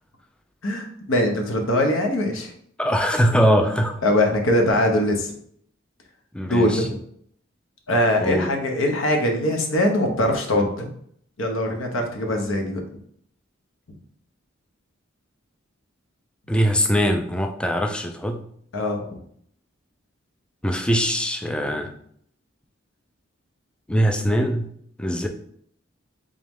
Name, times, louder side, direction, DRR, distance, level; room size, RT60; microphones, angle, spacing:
voice 1, 0.6-2.5 4.0-5.3 6.4-6.9 7.9-10.9 11.4-12.8 18.7-19.0, left 1 dB, 85° left, 2 dB, 0.9 m, -22 dB
voice 2, 2.8-4.0 6.3-6.9 8.2-8.5 16.5-18.4 20.6-21.9 23.9-24.7 25.0-25.3, equal, 5° left, 4 dB, 0.3 m, -22 dB
3.7 x 3.1 x 3.6 m, 0.65 s
head